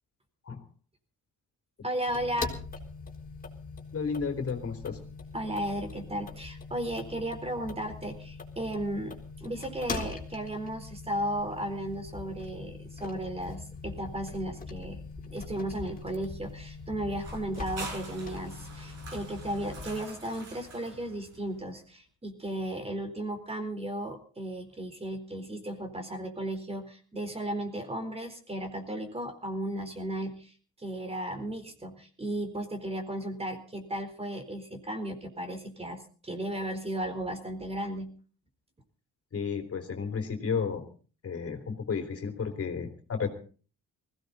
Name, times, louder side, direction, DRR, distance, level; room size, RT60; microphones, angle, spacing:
voice 1, 1.8-2.5 5.3-15.0 15.3-38.1, right 1 dB, 20° right, 6 dB, 4.1 m, -35 dB
sound 1, 2.1-20.0, left 4 dB, 30° left, 4.0 m, -42 dB
voice 2, 3.9-5.0 39.3-40.8 41.2-43.3, left 5 dB, 50° left, 5 dB, 3.5 m, -32 dB
sound 2, 17.2-21.7, right 3 dB, 55° right, 7.6 m, -45 dB
20.5 x 16.5 x 4.2 m, 0.40 s
cardioid pair, 90°, 30 cm